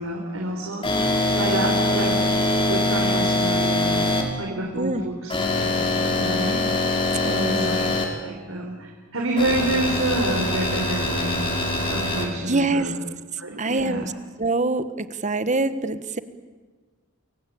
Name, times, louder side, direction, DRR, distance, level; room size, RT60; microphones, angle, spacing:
voice 1, 0.0-2.2 2.6-4.0 4.4-6.6 7.4-7.9 8.2-11.5 11.9-12.9 13.4-14.1, right 1 dB, 80° right, 0 dB, 4.1 m, -28 dB
sound 1, 0.8-4.2 5.3-8.0 9.4-12.2, left 2 dB, 25° left, 5.2 m, -23 dB
voice 2, 4.7-5.1 7.2-7.7 12.5-12.9 13.6-14.1 14.4-16.2, right 2 dB, 35° right, 12 dB, 1.4 m, -25 dB
28.5 x 23.0 x 8.8 m, 1.4 s
head